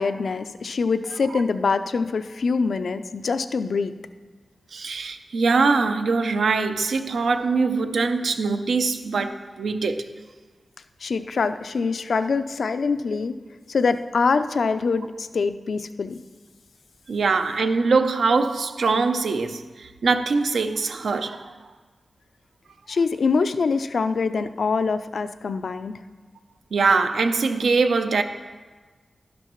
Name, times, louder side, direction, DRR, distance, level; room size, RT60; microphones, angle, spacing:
voice 1, 0.0-3.9 11.0-13.4 13.7-16.2 22.9-25.9, left 4 dB, 70° left, 0.4 m, -24 dB
voice 2, 4.7-10.0 17.1-21.5 26.7-28.2, right 4 dB, 90° right, 0.6 m, -22 dB
11.5 x 11.0 x 3.1 m
wide cardioid pair, 135°, 0 cm